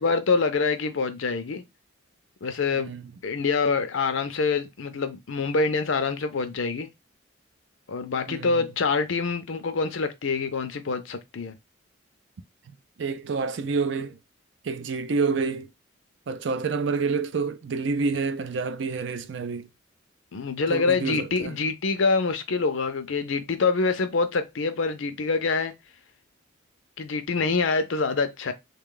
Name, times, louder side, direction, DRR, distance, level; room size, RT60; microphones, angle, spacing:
voice 1, 0.0-1.6 2.4-2.9 3.2-6.9 7.9-11.5 20.3-25.7 27.0-28.5, left 4 dB, 75° left, 0.5 m, -25 dB
voice 2, 2.7-3.1 8.3-8.7 12.7-14.2 14.6-15.7 16.3-19.7 20.7-21.6, right 4 dB, 60° right, 0.4 m, -28 dB
3.3 x 2.3 x 3.7 m
head